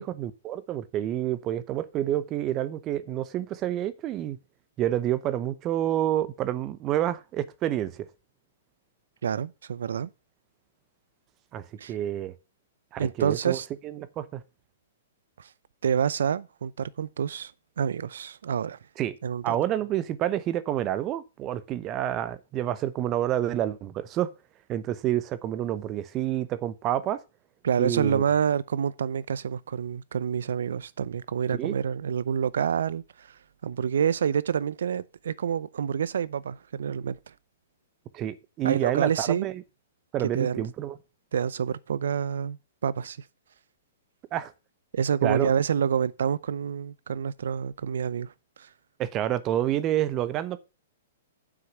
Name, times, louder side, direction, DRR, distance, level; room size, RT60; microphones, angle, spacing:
voice 1, 0.0-4.4 4.8-8.1 11.5-12.3 12.9-14.4 19.0-19.2 19.4-24.3 24.7-27.2 27.8-28.2 31.5-31.8 38.1-39.6 40.1-41.0 44.3-44.5 45.2-45.5 49.0-50.6, right 12 dB, 30° right, 0.8 m, -28 dB
voice 2, 9.2-10.1 11.8-11.9 13.0-13.7 15.4-15.5 15.8-17.5 17.8-18.8 19.2-19.6 27.6-33.3 33.6-37.2 38.6-39.5 40.2-40.7 41.3-43.2 44.9-48.3 48.6-48.7, right 7 dB, 70° right, 0.6 m, -27 dB
7.7 x 6.1 x 6.5 m
hypercardioid pair, 120°, 0 cm